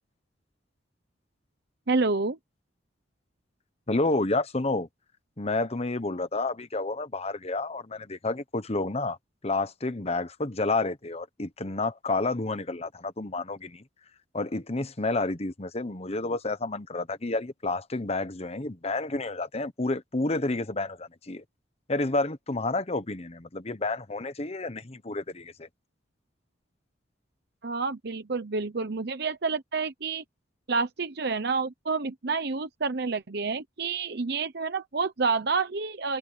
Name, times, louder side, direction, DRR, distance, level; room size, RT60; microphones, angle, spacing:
voice 1, 1.9-2.4 27.6-30.2 30.7-36.2, right 4 dB, 60° right, 0.9 m, -29 dB
voice 2, 3.9-4.9 5.4-9.2 9.4-13.8 14.3-21.4 21.9-25.7, left 2 dB, 35° left, 1.1 m, -30 dB
open air
head